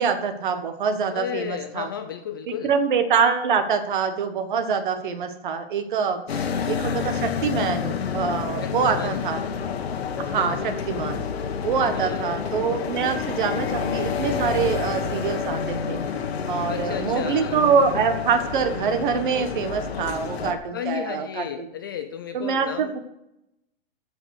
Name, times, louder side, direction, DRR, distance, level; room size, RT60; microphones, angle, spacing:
voice 1, 0.0-1.9 2.5-9.4 10.2-11.2 11.6-16.0 16.5-21.7 22.3-23.0, right 6 dB, 50° right, 9 dB, 1.5 m, -25 dB
voice 2, 1.1-2.7 8.6-9.2 11.9-12.2 16.7-17.6 20.7-22.9, left 9 dB, 20° left, 8 dB, 0.4 m, -33 dB
sound 1, 6.3-20.5, left 6 dB, 80° left, 1.7 m, -29 dB
14.5 x 5.4 x 6.6 m, 0.86 s
hypercardioid pair, 165°, 31 cm